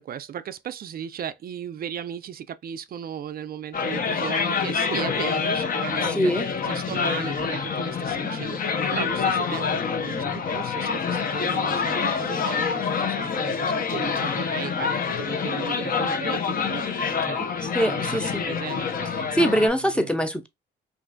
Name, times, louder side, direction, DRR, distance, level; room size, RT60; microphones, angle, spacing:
voice 1, 0.0-6.3 6.6-16.8 17.2-19.3 19.8-20.1, right 9 dB, 50° right, 0.4 m, -36 dB
sound 1, 3.7-19.7, left 6 dB, 45° left, 0.7 m, -26 dB
voice 2, 6.0-6.5 17.7-18.4 19.3-20.5, equal, 5° left, 0.6 m, -23 dB
3.1 x 2.5 x 2.5 m
cardioid pair, 90°, 20 cm